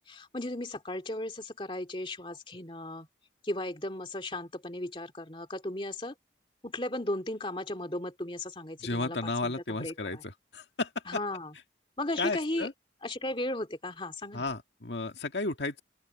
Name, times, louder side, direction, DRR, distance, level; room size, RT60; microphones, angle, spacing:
voice 1, 0.0-3.1 3.4-6.1 6.6-9.2 9.4-9.5 9.8-10.2 11.1-11.5 12.0-12.7 13.0-14.5, left 1 dB, 30° left, 2.5 m, -35 dB
voice 2, 8.8-10.9 12.2-12.7 14.3-15.8, left 3 dB, 75° left, 2.0 m, -33 dB
open air
head